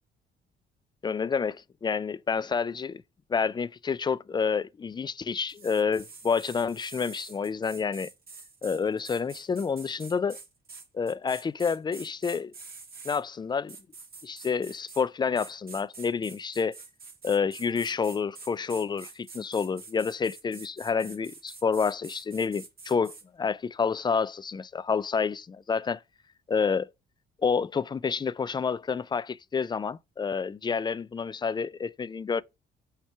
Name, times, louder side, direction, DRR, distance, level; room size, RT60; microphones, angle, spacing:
voice 1, 1.0-3.0 3.3-8.1 8.6-10.4 10.9-12.5 13.0-13.8 14.2-16.8 17.2-26.0 26.5-26.9 27.4-32.4, left 5 dB, 20° left, 0.3 m, -29 dB
sound 1, 5.5-13.2 13.7-15.1 15.4-23.2, right 4 dB, 50° right, 1.8 m, -47 dB
5.7 x 4.4 x 4.5 m
cardioid pair, 90°, 20 cm